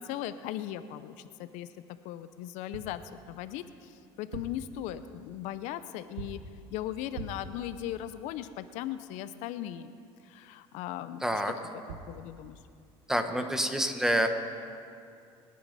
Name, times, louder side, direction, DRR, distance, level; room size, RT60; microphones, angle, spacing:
voice 1, 0.0-1.7 2.0-3.0 3.3-6.4 6.7-9.9 10.2-11.4 11.9-12.6, left 12 dB, 75° left, 12 dB, 0.6 m, -38 dB
sound 1, 2.7-3.0 4.1-4.7 6.2-6.5 7.1-7.6 11.6-11.7 11.9-12.2, right 6 dB, 90° right, 1.0 m, -42 dB
voice 2, 11.2-11.5 13.1-14.3, equal, 5° right, 6 dB, 1.3 m, -27 dB
22.5 x 9.5 x 4.1 m, 2.4 s
supercardioid pair, 95°, 13 cm